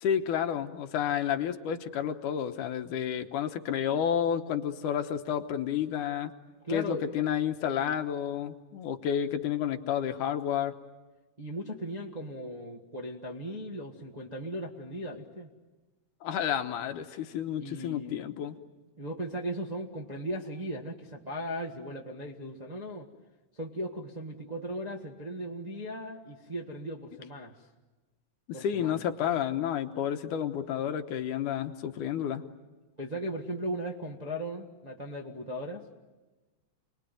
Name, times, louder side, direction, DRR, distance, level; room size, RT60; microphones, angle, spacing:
voice 1, 0.0-6.3 6.7-10.7 16.2-18.6 28.5-32.4, left 9 dB, 85° left, 7 dB, 2.6 m, -30 dB
voice 2, 6.6-7.1 11.4-15.5 17.6-18.2 19.0-23.1 23.5-27.7 28.5-29.0 33.0-36.0, equal, 25° right, -1 dB, 0.9 m, -37 dB
29.0 x 21.5 x 9.2 m, 1.2 s
omnidirectional pair, 3.6 m